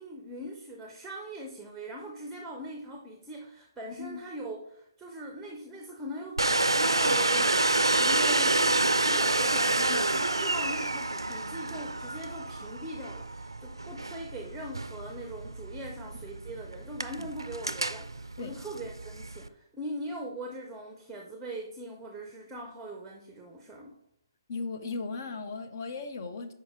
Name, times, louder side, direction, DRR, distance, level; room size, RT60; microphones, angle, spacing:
voice 1, 0.0-24.0, right 1 dB, 5° right, 0.6 m, -41 dB
Domestic sounds home sounds, 6.4-19.5, right 2 dB, 85° right, 0.4 m, -28 dB
voice 2, 24.5-26.5, left 4 dB, 45° left, 0.6 m, -37 dB
6.2 x 4.6 x 3.5 m
figure-of-eight pair, 135°, 2 cm